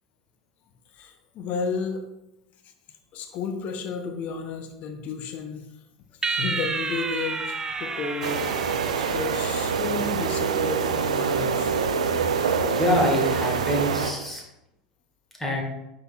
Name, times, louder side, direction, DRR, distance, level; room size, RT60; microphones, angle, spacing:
voice 1, 0.9-2.0 3.1-5.7 6.2-8.6 9.0-11.7, left 4 dB, 40° left, 6 dB, 0.7 m, -32 dB
sound 1, 6.2-9.8, right 4 dB, 15° right, 0.5 m, -31 dB
sound 2, 8.2-14.1, right 6 dB, 70° right, 0.5 m, -25 dB
voice 2, 12.7-14.4 15.4-15.6, left 1 dB, 5° left, -1 dB, 1.7 m, -25 dB
10.5 x 3.9 x 2.4 m, 0.89 s
figure-of-eight pair, 80°, 4 cm